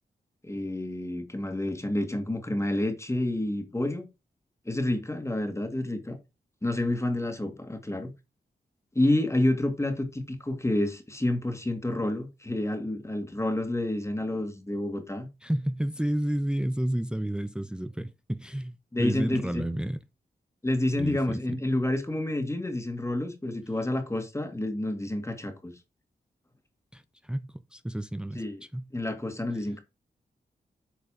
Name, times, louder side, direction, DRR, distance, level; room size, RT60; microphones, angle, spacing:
voice 1, 0.4-4.1 4.7-6.2 6.6-8.1 8.9-15.3 18.9-19.6 20.6-25.7 28.3-28.6 28.9-29.8, left 1 dB, 15° left, 2.2 m, -29 dB
voice 2, 15.4-20.0 21.0-21.4 26.9-28.4 28.7-28.9, right 1 dB, 5° right, 0.6 m, -31 dB
8.8 x 4.7 x 5.0 m
cardioid pair, 80°, 17 cm